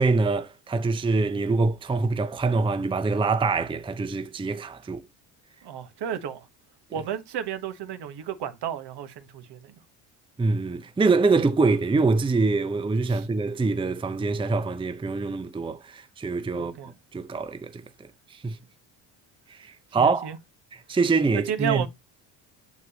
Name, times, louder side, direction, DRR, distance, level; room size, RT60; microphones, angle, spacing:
voice 1, 0.0-5.1 10.4-18.6 19.5-20.3 20.9-21.8, right 3 dB, 10° right, 0.6 m, -25 dB
voice 2, 5.6-6.5 6.9-9.7 13.0-13.3 16.5-16.9 20.0-20.4 21.3-21.9, right 9 dB, 60° right, 1.3 m, -32 dB
7.0 x 6.3 x 2.9 m
cardioid pair, 90°, 45 cm